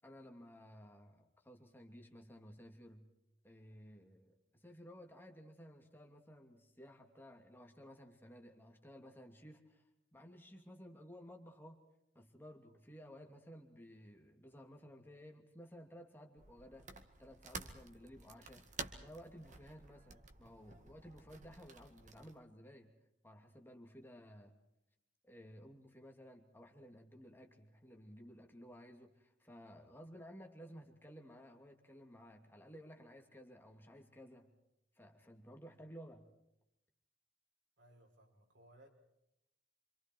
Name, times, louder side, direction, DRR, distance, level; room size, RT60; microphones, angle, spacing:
voice 1, 0.0-3.1 3.4-11.8 12.1-16.9 17.2-22.9 23.2-24.5 25.2-34.5 34.9-36.3, equal, 10° left, 2 dB, 2.8 m, -56 dB
sound 1, 16.4-22.4, right 4 dB, 40° right, 2.0 m, -51 dB
voice 2, 37.8-38.9, right 1 dB, 80° right, 1 dB, 6.4 m, -63 dB
27.5 x 26.5 x 4.7 m, 0.85 s
head